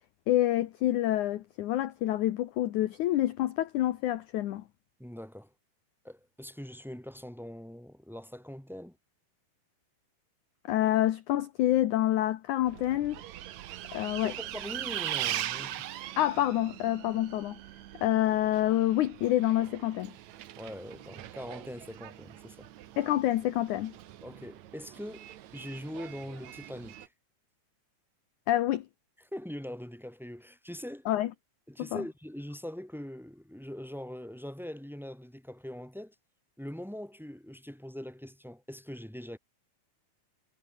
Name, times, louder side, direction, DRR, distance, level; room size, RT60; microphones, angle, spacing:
voice 1, 0.3-4.6 10.6-13.2 13.9-14.3 16.2-17.6 18.0-20.1 23.0-23.9 28.5-28.9 31.1-31.3 31.8-32.0, left 13 dB, 70° left, 2.0 m, -27 dB
voice 2, 5.0-5.5 6.0-9.0 14.2-15.9 20.6-22.7 24.2-27.1 29.2-31.1 31.7-36.1 36.6-39.4, equal, ahead, 5.5 m, -42 dB
Bus, 12.7-27.1, right 13 dB, 70° right, 1.7 m, -41 dB
omnidirectional pair, 4.6 m